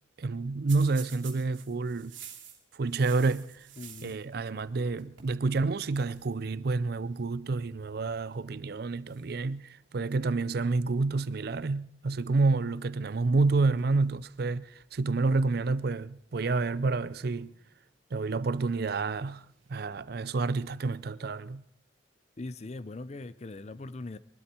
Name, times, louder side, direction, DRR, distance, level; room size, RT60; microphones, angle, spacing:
voice 1, 0.2-2.2 2.7-3.7 4.0-17.5 18.1-21.6, right 3 dB, 55° right, 0.5 m, -29 dB
sound 1, 0.7-4.3 4.6-5.3 5.6-5.7 5.9-6.2 7.1-7.4 8.2-8.5 9.1-10.1 13.1-13.2 13.6-14.4 14.8-14.9 15.8-15.9 17.1-17.9 19.2-19.7, right 9 dB, 85° right, 2.8 m, -51 dB
voice 2, 3.8-4.1 22.4-24.2, left 2 dB, 35° left, 0.5 m, -40 dB
23.0 x 12.5 x 4.4 m
head